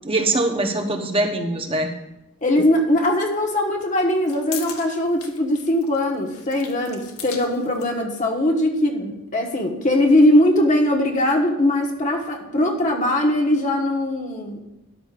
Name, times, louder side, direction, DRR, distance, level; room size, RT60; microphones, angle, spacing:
voice 1, 0.0-1.9, right 2 dB, 25° right, 4 dB, 1.0 m, -22 dB
voice 2, 2.4-14.6, left 1 dB, 35° left, 1 dB, 1.4 m, -20 dB
sound 1, 2.6-2.7 4.0-8.0, left 7 dB, 75° left, 1.4 m, -38 dB
12.5 x 11.0 x 2.5 m, 0.92 s
head